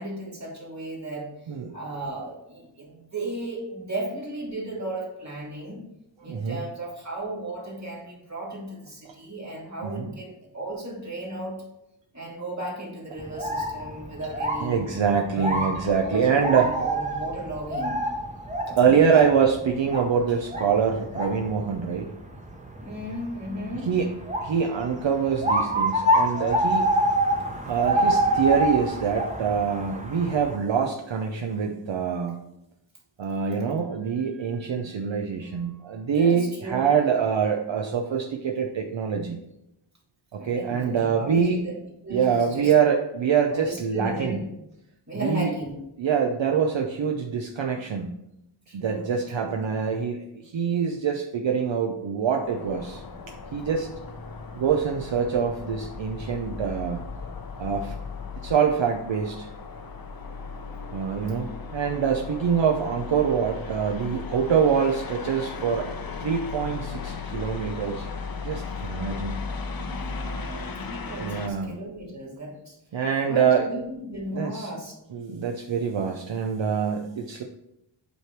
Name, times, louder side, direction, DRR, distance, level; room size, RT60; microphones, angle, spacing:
voice 1, 0.0-1.3 1.7-5.8 6.2-11.6 12.1-14.8 15.3-15.6 16.0-18.0 18.6-19.1 22.8-23.9 36.1-36.9 40.4-41.7 42.0-42.7 43.5-44.5 45.1-45.7 48.7-49.1 49.4-49.8 69.9-72.8 73.3-74.9, right 1 dB, 35° right, -3 dB, 2.4 m, -35 dB
voice 2, 6.3-6.6 9.8-10.2 14.6-16.7 18.8-22.1 23.9-24.1 24.4-27.1 27.7-32.4 33.2-39.4 40.3-41.6 42.1-44.4 45.2-45.5 46.0-48.2 48.7-53.0 53.5-53.9 54.5-57.0 57.6-57.9 58.4-59.5 60.9-65.9 66.2-68.1 68.4-69.4 71.2-71.8 72.9-73.7 74.3-74.7 75.1-77.4, right 7 dB, 70° right, 2 dB, 0.7 m, -25 dB
sound 1, 13.2-30.6, right 1 dB, 15° right, 0.9 m, -27 dB
sound 2, 52.4-71.5, left 4 dB, 50° left, 0.7 m, -36 dB
8.0 x 3.3 x 4.5 m, 0.85 s
wide cardioid pair, 70°, 47 cm